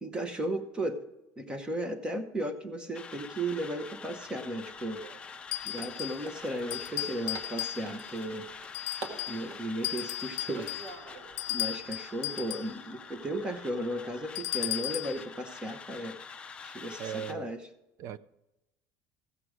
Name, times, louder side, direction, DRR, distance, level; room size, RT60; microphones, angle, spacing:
voice 1, 0.0-1.0 1.4-5.0 5.6-8.5 9.3-10.7 11.5-16.2 16.6-17.7, right 1 dB, 15° right, 0.9 m, -35 dB
sound 1, 2.9-17.3, left 5 dB, 15° left, 0.5 m, -46 dB
sound 2, 4.1-11.9, right 2 dB, 65° right, 2.1 m, -48 dB
sound 3, 5.5-6.3 6.7-8.1 8.7-9.4 9.8-12.8 14.3-15.2, left 16 dB, 65° left, 0.5 m, -36 dB
voice 2, 17.0-17.5 18.0-18.2, right 9 dB, 45° right, 0.4 m, -37 dB
15.0 x 7.8 x 4.9 m
cardioid pair, 165°, 7 cm